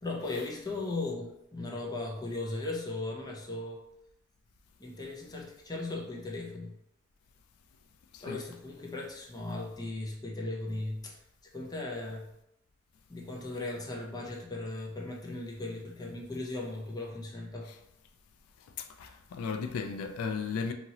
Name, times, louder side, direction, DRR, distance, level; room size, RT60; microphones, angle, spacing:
voice 1, 0.0-3.8 4.8-6.8 8.2-12.3 13.1-17.7, left 2 dB, 20° left, -1 dB, 0.5 m, -37 dB
voice 2, 19.0-20.7, left 5 dB, 85° left, 6 dB, 0.3 m, -34 dB
2.8 x 2.8 x 2.8 m, 0.82 s
head